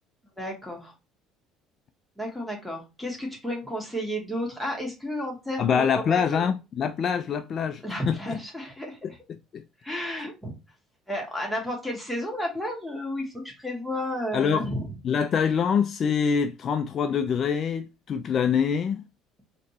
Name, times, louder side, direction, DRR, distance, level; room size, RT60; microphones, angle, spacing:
voice 1, 0.4-0.9 2.2-6.5 7.8-9.2 9.8-10.5 11.1-14.9, equal, ahead, 2.2 m, -32 dB
voice 2, 5.6-8.4 9.5-9.6 14.3-14.7 15.0-19.0, left 7 dB, 45° left, 0.4 m, -25 dB
4.1 x 3.0 x 3.0 m
hypercardioid pair, 60°, 0 cm